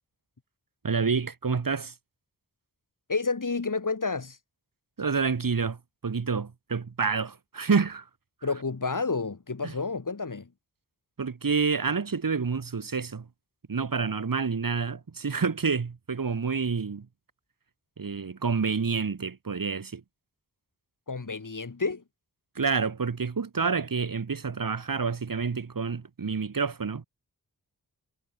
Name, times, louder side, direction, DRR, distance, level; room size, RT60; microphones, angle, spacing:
voice 1, 0.8-1.9 5.0-8.1 9.6-9.7 11.2-13.3 13.7-17.1 18.0-20.0 22.6-27.0, right 5 dB, 60° right, 1.9 m, -28 dB
voice 2, 3.1-4.4 8.4-10.5 21.1-22.0, left 4 dB, 55° left, 4.7 m, -30 dB
wide cardioid pair, 70°, 37 cm